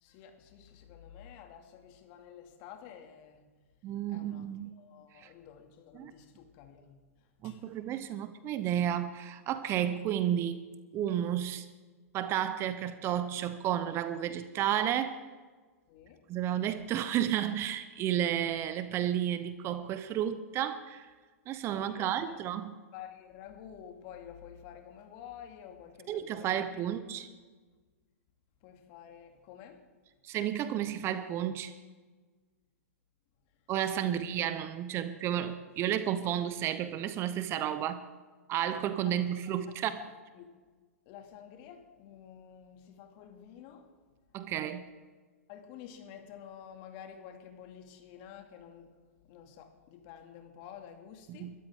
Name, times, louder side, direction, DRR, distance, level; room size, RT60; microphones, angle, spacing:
voice 1, 0.0-3.4 4.1-7.0 7.4-7.6 15.9-16.2 21.7-22.4 22.9-26.9 27.2-27.4 28.6-29.8 34.0-34.2 39.1-39.2 40.0-40.1 40.3-40.5 41.1-43.9 45.5-48.9 49.3-51.5, left 9 dB, 45° left, 4 dB, 2.3 m, -50 dB
voice 2, 3.8-4.7 5.2-5.3 5.9-6.1 7.4-10.6 10.9-11.6 12.1-15.2 16.3-21.1 21.5-22.7 26.1-27.3 30.2-31.7 33.7-38.0 38.5-40.1 44.3-44.8 51.3-51.5, right 10 dB, 30° right, 13 dB, 0.8 m, -32 dB
22.5 x 13.0 x 3.7 m, 1.4 s
hypercardioid pair, 115°, 8 cm